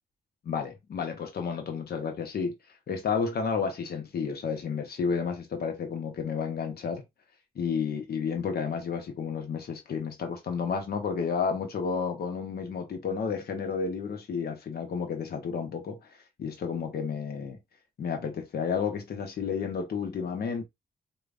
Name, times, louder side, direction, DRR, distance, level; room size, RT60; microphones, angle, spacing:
voice 1, 0.4-7.0 7.5-17.6 18.0-20.6, left 6 dB, 75° left, 0.8 m, -31 dB
5.0 x 2.2 x 2.5 m
wide cardioid pair, 105°, 16 cm